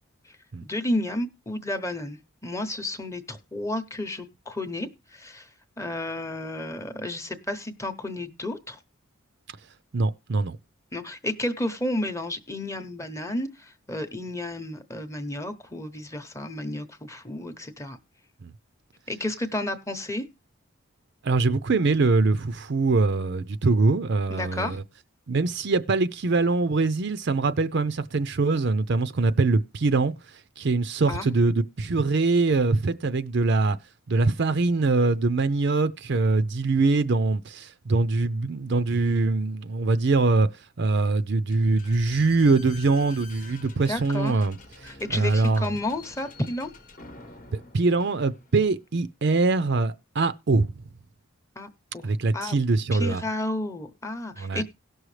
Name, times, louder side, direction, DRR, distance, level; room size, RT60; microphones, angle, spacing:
voice 1, 0.2-5.5 5.8-8.8 10.9-18.0 19.1-20.2 24.3-24.8 31.1-31.3 43.9-44.4 44.8-46.7 51.6-52.6 52.9-54.6, left 1 dB, 15° left, 0.8 m, -32 dB
voice 2, 9.9-10.6 18.4-18.5 21.2-24.8 25.3-30.1 30.6-33.8 34.1-40.5 40.8-45.7 47.5-50.7 52.0-53.2 54.4-54.6, right 3 dB, 50° right, 0.5 m, -23 dB
Slam / Squeak, 41.5-48.8, left 3 dB, 35° left, 0.9 m, -47 dB
17.5 x 6.3 x 3.2 m
head